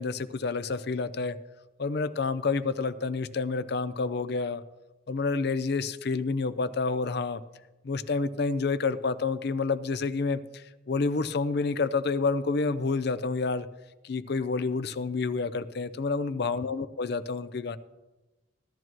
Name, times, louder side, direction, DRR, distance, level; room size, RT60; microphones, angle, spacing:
voice 1, 0.0-1.4 1.8-4.6 5.1-7.4 7.8-13.7 14.0-17.8, left 4 dB, 55° left, 12 dB, 0.5 m, -29 dB
16.0 x 12.5 x 3.1 m, 1.1 s
head